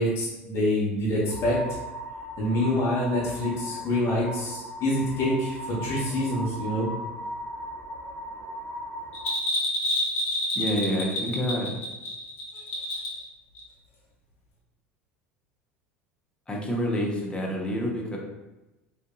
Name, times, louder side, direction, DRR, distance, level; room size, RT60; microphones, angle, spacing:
voice 1, 0.0-1.6 2.4-6.9, left 1 dB, 45° left, -5 dB, 1.1 m, -26 dB
sound 1, 1.3-9.3, equal, 90° right, 0.5 m, -38 dB
Bell, 9.1-13.3 13.6-13.7, left 1 dB, 80° left, 0.8 m, -28 dB
voice 2, 10.5-11.7 16.5-18.2, equal, 15° left, -1 dB, 0.8 m, -28 dB
3.6 x 2.5 x 2.3 m, 1.0 s
hypercardioid pair, 70°, 7 cm